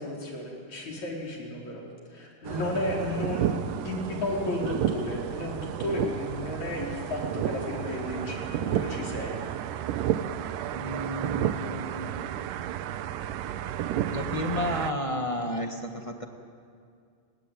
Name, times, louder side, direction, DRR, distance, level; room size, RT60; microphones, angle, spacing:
voice 1, 0.0-1.8 2.1-9.8, left 1 dB, 55° left, -2 dB, 6.1 m, -33 dB
sound 1, 2.5-14.9, right 11 dB, 80° right, 2.4 m, -32 dB
voice 2, 10.7-12.1 14.1-16.2, left 1 dB, 35° left, 3 dB, 0.5 m, -32 dB
30.0 x 21.0 x 9.3 m, 2.3 s
omnidirectional pair, 3.8 m